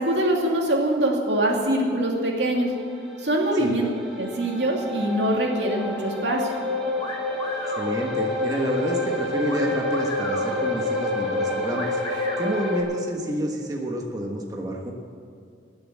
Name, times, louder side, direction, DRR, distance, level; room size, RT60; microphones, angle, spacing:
voice 1, 0.0-2.7 3.2-3.9 4.2-6.5, right 1 dB, 75° right, 0 dB, 2.6 m, -23 dB
sound 1, 2.6-12.8, left 2 dB, ahead, 4.2 m, -29 dB
sound 2, 7.0-7.9 9.5-10.5 11.8-12.5, left 2 dB, 25° left, 2.3 m, -35 dB
voice 2, 7.7-12.0 12.4-14.9, right 1 dB, 20° right, -1 dB, 1.3 m, -29 dB
19.0 x 7.2 x 8.7 m, 2.4 s
head